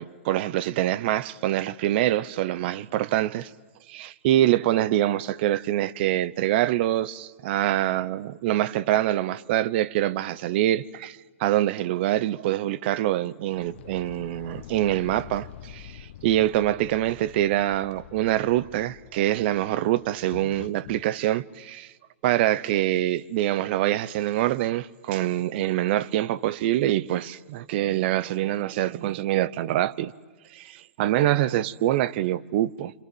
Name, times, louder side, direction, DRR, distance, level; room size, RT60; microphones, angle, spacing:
voice 1, 0.0-3.5 3.9-21.9 22.2-30.1 30.5-32.9, right 14 dB, 50° right, 0.8 m, -25 dB
sound 1, 13.5-21.1, left 12 dB, 55° left, 1.0 m, -46 dB
28.0 x 26.0 x 8.0 m
hypercardioid pair, 125°, 7 cm